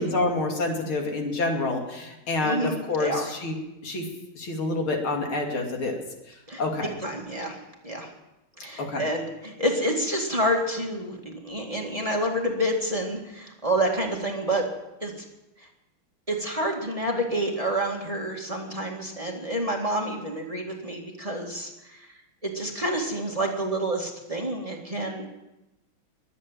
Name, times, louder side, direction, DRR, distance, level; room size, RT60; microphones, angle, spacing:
voice 1, 0.0-3.6 3.8-4.1 4.4-6.0 6.3-6.9 8.8-9.1, left 2 dB, 85° left, 2 dB, 3.4 m, -28 dB
voice 2, 2.4-3.3 6.5-7.6 7.8-8.1 8.6-14.6 15.0-15.1 16.3-22.1 22.4-25.3, right 1 dB, 15° right, 1 dB, 2.0 m, -28 dB
22.0 x 8.6 x 7.4 m, 0.95 s
omnidirectional pair, 2.3 m